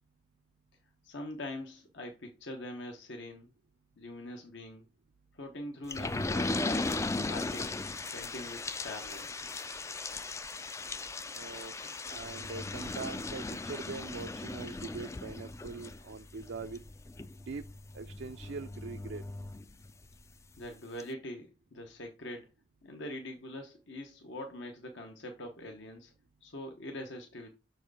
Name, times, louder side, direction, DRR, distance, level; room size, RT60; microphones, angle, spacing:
voice 1, 1.0-3.5 4.0-4.8 5.3-7.0 7.2-7.8 8.1-9.3 20.6-22.5 22.8-26.1 26.4-27.5, left 1 dB, 70° left, 1.0 m, -43 dB
sound 1, 5.9-20.2 20.6-20.7 21.0-21.1, left 3 dB, 15° left, 0.3 m, -38 dB
sound 2, 6.8-13.8, left 5 dB, 45° left, 0.9 m, -56 dB
voice 2, 11.3-11.8 12.1-16.8 17.5-17.7 17.9-19.2, right 4 dB, 60° right, 0.4 m, -42 dB
6.3 x 4.6 x 4.7 m
head